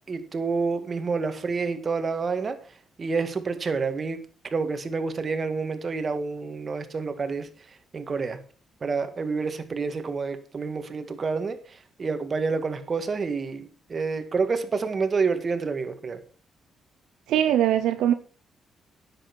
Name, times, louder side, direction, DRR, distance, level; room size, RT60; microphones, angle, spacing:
voice 1, 0.1-2.6 3.0-4.2 4.5-7.5 7.9-8.4 8.8-11.6 12.0-16.2, right 4 dB, 45° right, 9 dB, 2.0 m, -28 dB
voice 2, 17.3-18.1, right 11 dB, 85° right, 10 dB, 0.7 m, -21 dB
10.0 x 7.9 x 6.2 m, 0.40 s
supercardioid pair, 65°, 0 cm